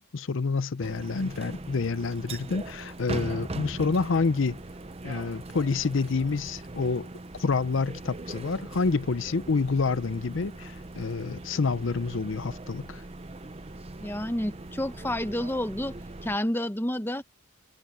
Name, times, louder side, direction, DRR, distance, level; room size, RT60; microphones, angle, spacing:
voice 1, 0.0-4.6 5.0-7.1 7.4-13.0, left 4 dB, 65° left, 0.6 m, -28 dB
sound 1, 0.8-16.4, right 2 dB, 30° right, 0.7 m, -40 dB
voice 2, 14.0-16.0 16.2-17.2, left 1 dB, 10° left, 0.8 m, -29 dB
head